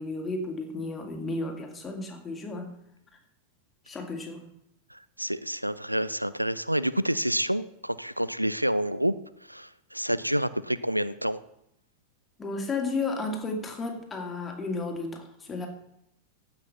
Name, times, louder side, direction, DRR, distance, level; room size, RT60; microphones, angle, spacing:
voice 1, 0.0-2.7 3.8-4.4 12.4-15.7, left 3 dB, 15° left, 2 dB, 2.4 m, -33 dB
voice 2, 4.9-9.1 9.5-11.4, right 1 dB, 90° right, 16 dB, 0.4 m, -28 dB
15.5 x 6.0 x 5.6 m, 0.78 s
figure-of-eight pair, 90°, 0 cm